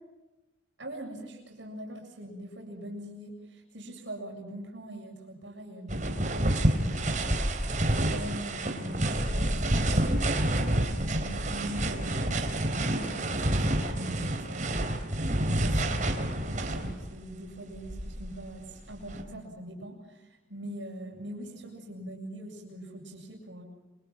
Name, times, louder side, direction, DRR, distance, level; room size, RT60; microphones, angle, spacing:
voice 1, 0.8-7.3 7.9-10.2 10.5-12.5 12.9-14.9 15.4-23.6, right 1 dB, 75° right, 0 dB, 7.6 m, -42 dB
sound 1, 5.9-17.2 17.7-19.2, right 1 dB, 40° right, 3.9 m, -28 dB
28.5 x 26.0 x 6.0 m, 1.0 s
head